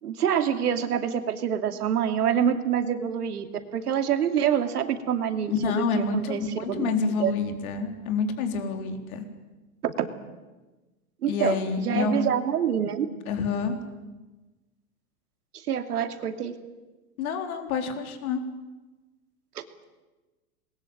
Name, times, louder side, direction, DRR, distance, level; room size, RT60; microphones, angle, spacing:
voice 1, 0.0-7.3 9.8-10.1 11.2-13.1 15.5-16.6 19.5-19.6, right 9 dB, 90° right, 7 dB, 2.8 m, -26 dB
voice 2, 5.5-9.2 11.3-12.3 13.3-13.8 17.2-18.4, left 5 dB, 65° left, 5 dB, 4.3 m, -28 dB
27.5 x 21.0 x 9.0 m, 1.2 s
hypercardioid pair, 130°, 45 cm